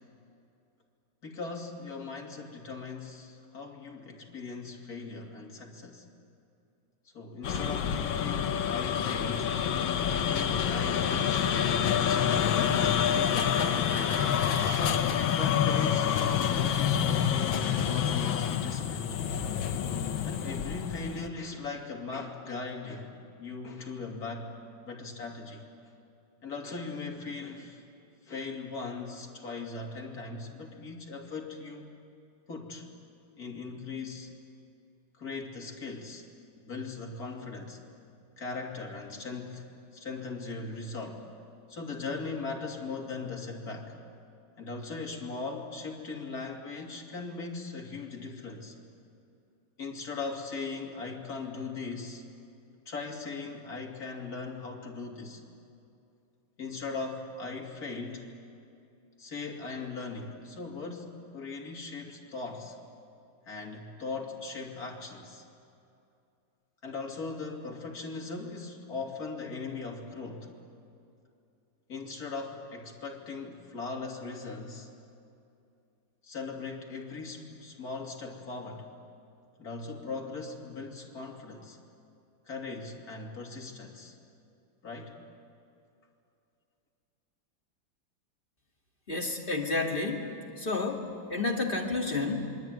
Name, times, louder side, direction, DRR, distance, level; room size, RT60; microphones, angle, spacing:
voice 1, 1.2-6.1 7.1-9.5 10.2-11.5 11.8-13.6 14.6-19.2 20.2-23.1 23.4-24.6 24.8-25.6 26.4-27.8 28.2-32.0 32.5-32.9 33.4-34.3 35.2-36.3 36.7-37.8 38.4-39.6 39.9-41.3 41.7-43.9 44.6-48.7 49.8-52.2 52.9-55.4 56.6-58.3 59.2-62.8 63.5-65.4 66.8-70.5 71.9-74.9 76.2-78.9 79.6-81.8 82.4-84.1 84.8-85.2, left 4 dB, 50° left, 0 dB, 3.3 m, -39 dB
sound 1, 7.4-21.3, left 8 dB, 85° left, 1.9 m, -27 dB
voice 2, 89.1-90.3 90.6-92.5, left 3 dB, 30° left, 1 dB, 2.2 m, -30 dB
26.5 x 22.0 x 9.3 m, 2.6 s
omnidirectional pair, 2.1 m